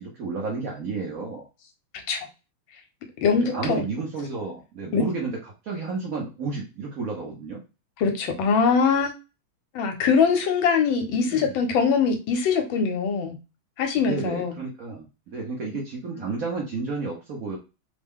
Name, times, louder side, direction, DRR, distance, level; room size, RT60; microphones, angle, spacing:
voice 1, 0.0-1.5 3.3-5.4 5.6-7.6 11.2-11.5 14.1-17.6, right 4 dB, 60° right, -2 dB, 0.9 m, -31 dB
voice 2, 3.2-3.8 4.9-5.0 8.0-9.1 9.7-13.4 13.8-14.6 16.1-16.4, left 5 dB, 75° left, 4 dB, 1.4 m, -22 dB
3.5 x 2.1 x 3.5 m, 0.29 s
omnidirectional pair, 2.2 m